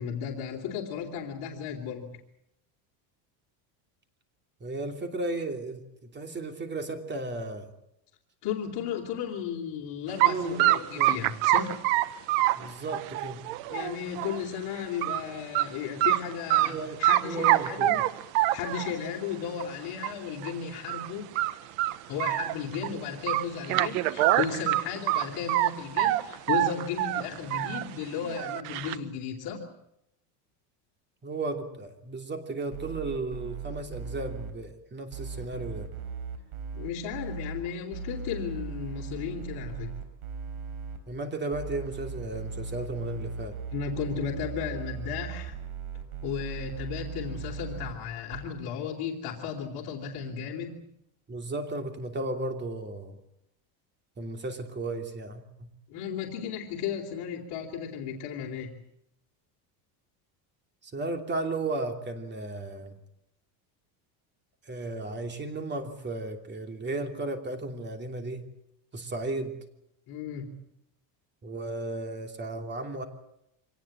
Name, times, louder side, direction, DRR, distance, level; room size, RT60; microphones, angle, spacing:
voice 1, 0.0-2.1 8.4-11.8 13.7-18.0 18.5-21.4 22.1-29.7 36.7-39.9 43.7-45.6 46.2-50.8 55.9-58.7 70.1-70.6, left 7 dB, 55° left, -1 dB, 3.5 m, -34 dB
voice 2, 4.6-7.7 10.2-11.1 12.6-13.5 16.6-17.9 22.9-23.0 31.2-35.9 41.1-43.6 51.3-53.2 54.2-55.7 60.8-63.0 64.6-68.4 68.9-69.6 71.4-73.0, right 2 dB, 25° right, 5 dB, 2.9 m, -34 dB
sound 1, 10.2-10.3 10.6-14.4 14.8-15.2 15.5-15.7 16.0-16.7 17.0-19.0 19.6-19.7 20.0-20.1 20.4-20.5 20.9-21.1 21.4-22.9 23.3-25.7 26.0-27.8 28.2-29.0, right 15 dB, 75° right, 1.3 m, -25 dB
sound 2, 32.7-34.5 35.1-37.6 37.9-41.0 41.5-47.9 48.3-48.4, right 5 dB, 55° right, 4.4 m, -38 dB
24.5 x 19.0 x 8.7 m, 0.81 s
cardioid pair, 140°, 45 cm